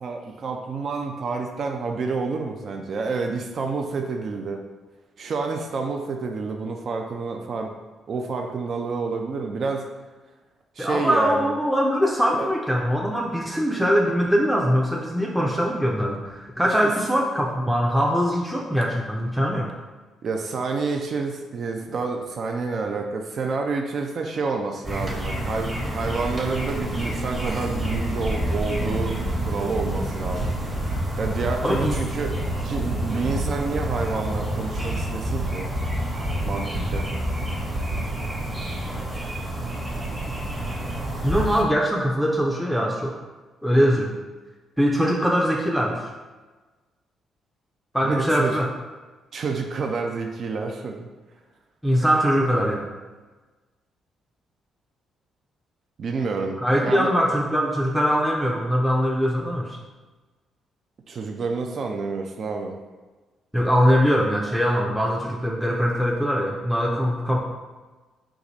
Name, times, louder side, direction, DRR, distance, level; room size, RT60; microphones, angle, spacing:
voice 1, 0.0-4.6 5.2-7.7 8.1-9.9 10.8-11.6 12.3-12.5 20.2-29.2 29.5-30.5 31.2-32.3 32.6-35.7 36.4-37.1 48.0-48.6 49.3-51.1 56.0-57.1 61.1-62.8, right 4 dB, 55° right, 3 dB, 0.4 m, -28 dB
voice 2, 10.8-19.7 31.6-32.0 33.1-33.3 41.2-43.2 43.6-44.1 44.8-46.1 47.9-48.7 51.8-52.9 56.6-59.8 63.5-67.4, equal, ahead, -2 dB, 0.5 m, -22 dB
sound 1, 24.8-41.6, right 1 dB, 25° right, 1.1 m, -30 dB
sound 2, 27.7-28.0 28.2-28.5 28.7-29.0 29.2-29.5 29.7-30.0 30.2-30.5 30.7-31.0 31.2-31.5 31.7-32.0 32.2-32.5 32.7-33.0 33.2-33.5 33.7-34.0 34.2-34.5 34.7-35.0 35.2-35.5 35.7-36.0 36.2-36.5 36.7-37.0 37.2-37.5 37.7-38.0, right 2 dB, 70° right, 0.8 m, -29 dB
4.6 x 2.5 x 4.0 m, 1.3 s
cardioid pair, 90°, 0 cm